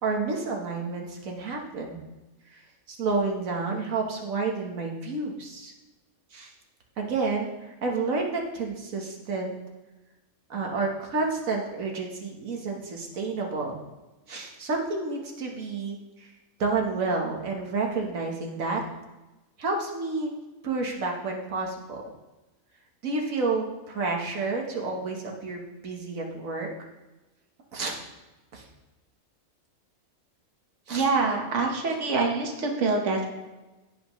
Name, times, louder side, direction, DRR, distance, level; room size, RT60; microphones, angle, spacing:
voice 1, 0.0-2.0 2.5-2.6 2.9-5.7 6.3-6.5 7.0-9.5 10.5-13.7 14.3-16.3 16.6-18.8 19.6-20.3 20.6-22.0 23.0-26.7 27.7-28.0 28.5-28.6 30.9-31.1, right 3 dB, 90° right, 0 dB, 1.7 m, -30 dB
voice 2, 30.9-33.3, right 3 dB, 60° right, 1 dB, 1.6 m, -25 dB
16.0 x 5.8 x 3.1 m, 1.1 s
omnidirectional pair, 1.4 m